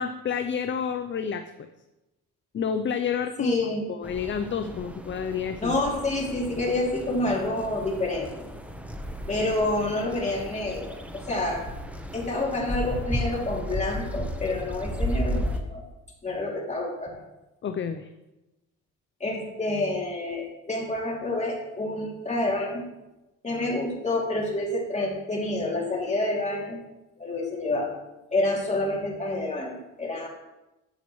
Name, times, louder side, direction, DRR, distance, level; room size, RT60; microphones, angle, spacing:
voice 1, 0.0-1.7 2.5-3.5 3.9-5.7 17.6-18.1, left 7 dB, 40° left, 8 dB, 0.6 m, -29 dB
voice 2, 3.4-3.8 5.6-8.5 9.3-11.7 12.1-15.8 16.2-17.2 19.2-22.8 23.4-26.8 27.2-28.0 28.3-30.3, left 2 dB, 25° left, -2 dB, 2.8 m, -28 dB
sound 1, 4.0-15.6, equal, 5° right, 1.0 m, -34 dB
11.0 x 8.3 x 3.1 m, 1.0 s
cardioid pair, 90°, 30 cm